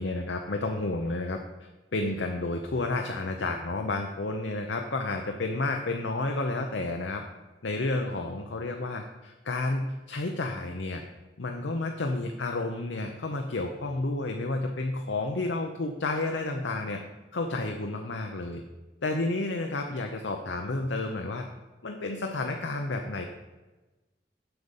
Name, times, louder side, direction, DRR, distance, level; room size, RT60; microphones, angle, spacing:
voice 1, 0.0-7.2 7.6-11.0 11.4-17.0 17.3-18.6 19.0-21.5 21.8-23.2, left 2 dB, 80° left, 3 dB, 0.7 m, -31 dB
7.9 x 5.1 x 7.1 m, 1.1 s
head